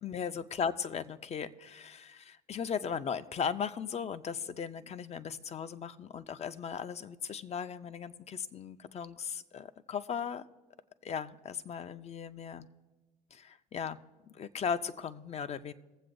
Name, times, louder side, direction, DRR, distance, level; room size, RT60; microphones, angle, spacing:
voice 1, 0.0-10.4 11.0-12.7 13.3-14.0 14.2-15.7, left 7 dB, 35° left, 13 dB, 0.6 m, -37 dB
22.0 x 7.5 x 2.6 m, 1.2 s
hypercardioid pair, 75°, 20 cm